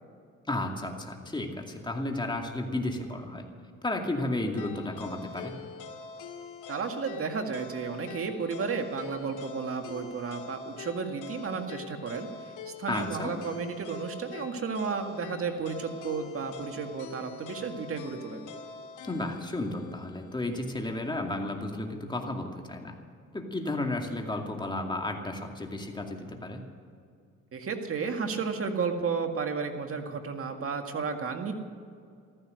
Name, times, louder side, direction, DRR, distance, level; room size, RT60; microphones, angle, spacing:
voice 1, 0.5-3.5 3.8-5.6 12.9-13.3 19.0-23.0 23.3-26.6, left 2 dB, 15° left, 2 dB, 2.4 m, -33 dB
sound 1, 4.6-20.7, left 5 dB, 85° left, 2.1 m, -44 dB
voice 2, 6.7-12.3 12.8-18.4 27.5-31.5, right 5 dB, 50° right, 5 dB, 2.0 m, -33 dB
14.5 x 14.5 x 6.5 m, 2.3 s
cardioid pair, 90°, 30 cm